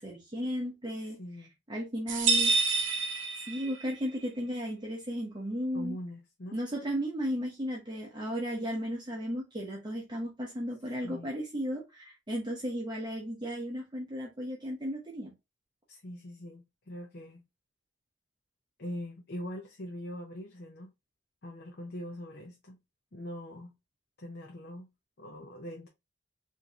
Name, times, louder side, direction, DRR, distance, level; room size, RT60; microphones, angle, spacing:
voice 1, 0.0-1.2 1.7-2.6 3.5-6.0 6.5-15.3, equal, 20° right, 0.8 m, -35 dB
voice 2, 1.2-1.5 5.7-6.6 11.0-11.3 15.9-17.4 18.8-20.9 21.4-22.8 23.1-23.7 24.2-24.9 25.2-25.9, left 1 dB, 55° left, 0.7 m, -42 dB
sound 1, 2.1-4.0, right 3 dB, 65° right, 0.8 m, -28 dB
4.5 x 2.7 x 2.4 m
head